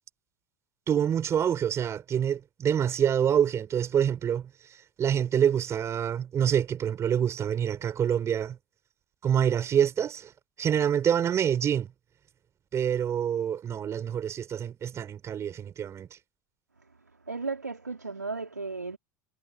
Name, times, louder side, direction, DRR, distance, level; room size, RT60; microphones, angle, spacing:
voice 1, 0.9-4.5 5.0-8.6 9.2-10.3 10.6-11.9 12.7-16.2, right 9 dB, 30° right, 4.2 m, -26 dB
voice 2, 17.3-19.0, right 4 dB, 85° right, 3.9 m, -34 dB
figure-of-eight pair, 80°, 9 cm